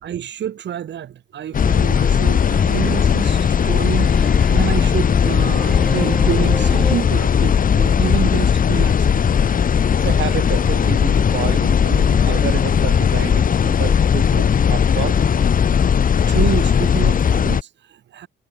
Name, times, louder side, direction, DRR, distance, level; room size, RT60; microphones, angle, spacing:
voice 1, 0.0-9.3 16.1-18.3, right 10 dB, 65° right, 3.7 m, -28 dB
sound 1, 1.5-17.6, left 7 dB, 45° left, 1.4 m, -17 dB
sound 2, 1.9-7.0, equal, ahead, 3.3 m, -32 dB
voice 2, 10.0-15.2, right 13 dB, 80° right, 5.2 m, -29 dB
cardioid pair, 90°, 20 cm